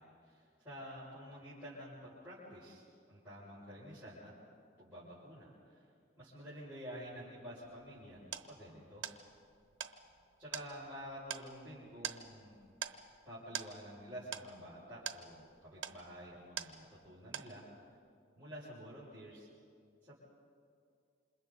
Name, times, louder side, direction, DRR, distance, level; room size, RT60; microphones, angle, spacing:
voice 1, 0.0-4.3 4.8-5.9 6.2-9.1 9.9-10.1 10.4-12.6 13.2-17.6 18.3-19.5 20.0-20.2, equal, 10° right, -13 dB, 6.4 m, -50 dB
sound 1, 7.6-17.1 17.3-17.9, right 8 dB, 70° right, 1.0 m, -46 dB
28.5 x 27.0 x 4.1 m, 2.3 s
head